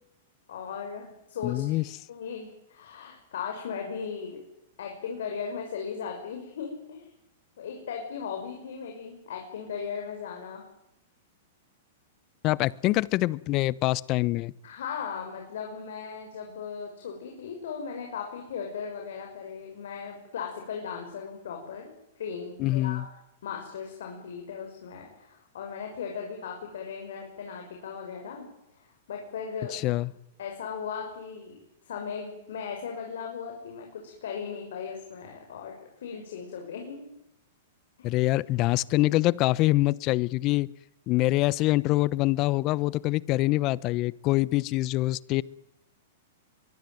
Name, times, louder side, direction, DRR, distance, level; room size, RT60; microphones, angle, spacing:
voice 1, 0.5-4.4 4.8-7.1 7.6-10.6 14.6-23.1 23.4-28.5 28.7-29.8 30.4-31.6 31.9-37.1 38.0-38.1, left 6 dB, 75° left, 6.3 m, -37 dB
voice 2, 1.4-1.8 12.4-14.5 22.6-23.1 29.7-30.1 38.0-40.7 41.1-45.4, left 18 dB, 40° left, 0.9 m, -25 dB
23.5 x 23.0 x 9.4 m
hypercardioid pair, 120°, 0 cm